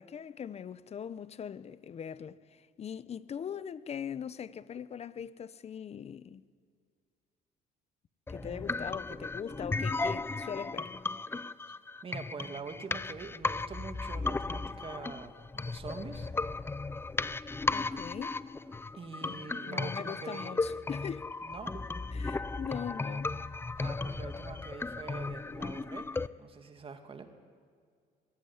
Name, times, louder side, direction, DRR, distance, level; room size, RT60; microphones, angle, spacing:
voice 1, 0.0-6.4 8.3-10.9 17.7-18.4 19.2-19.4 19.7-21.3 22.1-23.3, left 8 dB, 40° left, 0.8 m, -41 dB
sound 1, 8.3-26.3, left 3 dB, 15° left, 0.5 m, -35 dB
voice 2, 8.4-9.2 12.0-16.3 18.9-20.6 21.4-21.8 23.8-26.1 26.4-27.3, right 5 dB, 35° right, 2.3 m, -45 dB
22.0 x 16.5 x 9.8 m
cardioid pair, 110°, 17 cm